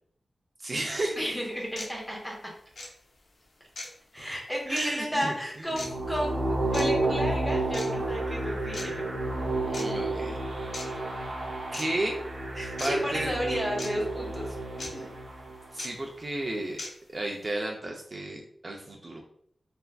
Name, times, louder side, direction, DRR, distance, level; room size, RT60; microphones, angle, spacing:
voice 1, 0.6-1.2 4.2-4.3 4.7-5.7 9.7-10.3 11.7-12.2 12.8-13.3 15.7-16.8 17.1-19.2, right 1 dB, 40° right, 1 dB, 0.4 m, -33 dB
sound 1, 1.0-1.1 1.8-1.9 2.7-2.9 3.8-3.9 4.8-4.9 5.8-5.9 6.7-6.9 7.7-7.9 8.7-8.9 9.7-9.8 10.7-10.9 11.7-11.9 12.8-12.9 13.8-13.9 14.8-14.9 15.8-15.9 16.8-16.9, left 2 dB, 85° left, 0.5 m, -37 dB
voice 2, 1.2-2.3 4.1-9.1 12.6-15.1, equal, 10° left, -2 dB, 0.9 m, -33 dB
sound 2, 5.7-15.8, right 2 dB, 75° right, 0.7 m, -31 dB
3.3 x 2.4 x 2.3 m, 0.63 s
wide cardioid pair, 110°, 0 cm